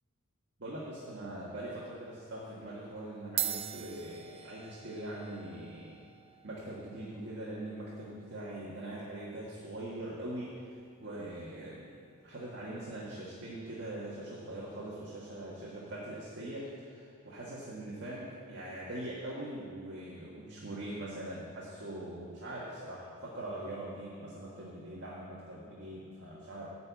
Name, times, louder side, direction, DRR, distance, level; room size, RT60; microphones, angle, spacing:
voice 1, 0.6-6.0 6.4-12.0 12.2-26.7, right 1 dB, 50° right, -6 dB, 1.6 m, -42 dB
sound 1, 1.7-2.0 2.9-3.0 3.2-11.9, right 10 dB, 25° right, 0.3 m, -44 dB
12.0 x 4.4 x 8.2 m, 2.5 s
head